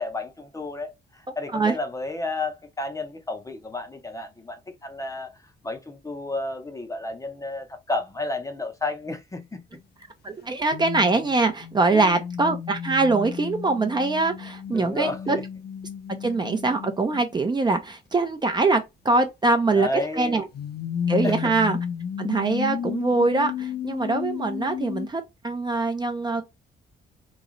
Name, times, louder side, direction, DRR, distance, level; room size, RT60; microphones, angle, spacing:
voice 1, 0.0-9.6 11.9-12.2 14.7-15.4 19.7-20.5 21.2-21.5, left 2 dB, 15° left, 0.7 m, -32 dB
sound 1, 10.1-10.2 10.7-17.3 20.5-25.1, left 8 dB, 60° left, 0.6 m, -33 dB
voice 2, 10.2-15.4 16.1-19.9 20.2-20.5 21.1-21.8 22.2-26.4, right 3 dB, 25° right, 0.6 m, -23 dB
3.1 x 2.9 x 3.8 m
cardioid pair, 135°, 19 cm